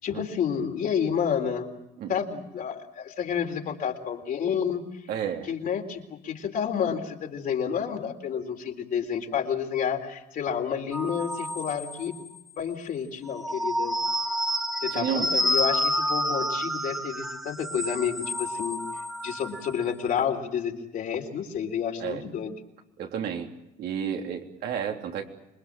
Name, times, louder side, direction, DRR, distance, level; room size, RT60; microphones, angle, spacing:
voice 1, 0.0-1.7 2.1-4.8 5.5-12.1 12.6-14.0 14.8-18.8 19.2-22.5, left 7 dB, 55° left, 3 dB, 3.8 m, -30 dB
voice 2, 5.1-5.5 14.9-15.3 22.0-22.2 23.0-23.5 23.8-25.2, right 8 dB, 75° right, 2 dB, 3.5 m, -31 dB
sound 1, 10.9-12.4 13.3-19.9, equal, ahead, 2.1 m, -29 dB
26.5 x 21.5 x 7.5 m, 0.88 s
cardioid pair, 110°, 17 cm